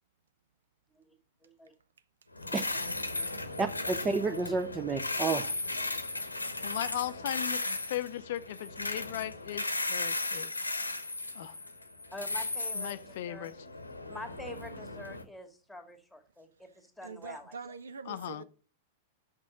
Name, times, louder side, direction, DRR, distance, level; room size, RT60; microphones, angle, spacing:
voice 1, 1.4-1.7 12.1-13.5 14.0-17.6, left 1 dB, ahead, 1.9 m, -46 dB
sound 1, 2.4-15.2, left 2 dB, 85° left, 0.8 m, -36 dB
voice 2, 3.6-5.5, right 4 dB, 20° right, 0.6 m, -31 dB
voice 3, 6.6-10.5 11.3-11.6 12.7-13.5 18.1-18.4, left 13 dB, 55° left, 0.5 m, -37 dB
voice 4, 17.0-18.4, right 5 dB, 75° right, 0.6 m, -44 dB
6.3 x 6.2 x 7.1 m
figure-of-eight pair, 95°, 0 cm